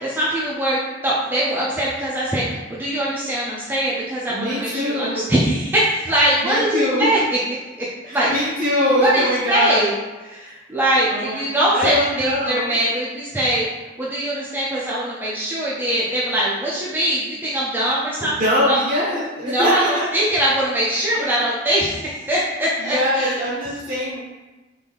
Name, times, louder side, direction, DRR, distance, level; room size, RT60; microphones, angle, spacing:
voice 1, 0.0-7.2 7.8-8.3 9.0-9.9 10.2-13.6 14.0-18.4 18.7-18.8 19.4-23.4, right 1 dB, 10° right, -7 dB, 0.4 m, -22 dB
voice 2, 4.3-5.3 6.4-7.1 8.1-9.8 10.4-10.6 11.1-11.4 11.7-12.7 18.2-20.1 21.2-21.4 22.8-24.2, equal, 45° right, -5 dB, 0.8 m, -22 dB
3.7 x 2.6 x 3.3 m, 1.1 s
head